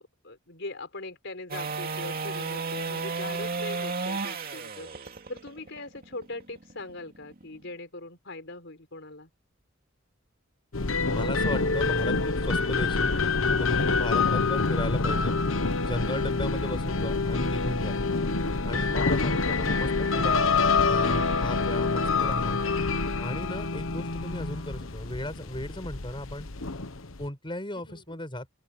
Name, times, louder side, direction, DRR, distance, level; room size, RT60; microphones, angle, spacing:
voice 1, 0.0-4.9 5.3-9.3 27.9-28.2, left 2 dB, 60° left, 5.0 m, -41 dB
sound 1, 1.5-7.6 14.2-14.3, right 4 dB, 50° right, 2.6 m, -33 dB
sound 2, 10.7-27.3, left 4 dB, 85° left, 1.3 m, -26 dB
voice 2, 11.0-13.1 13.5-15.3 15.8-18.0 18.6-20.5 20.9-22.6 23.2-26.5 27.2-28.5, left 1 dB, 25° left, 6.8 m, -35 dB
open air
head